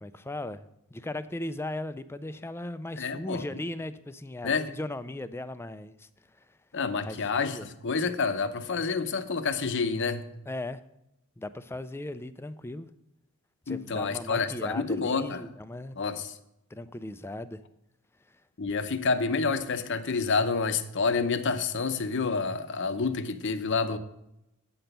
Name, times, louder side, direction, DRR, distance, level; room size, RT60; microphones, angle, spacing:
voice 1, 0.0-6.6 7.0-7.7 10.5-10.8 11.4-12.9 13.7-16.0 16.7-17.6 18.2-18.4, left 1 dB, 10° left, 13 dB, 0.3 m, -37 dB
voice 2, 3.0-3.4 4.4-4.7 6.7-10.2 13.7-15.4 16.0-16.3 18.6-24.0, left 4 dB, 55° left, 10 dB, 0.7 m, -28 dB
8.7 x 6.0 x 6.7 m, 0.85 s
head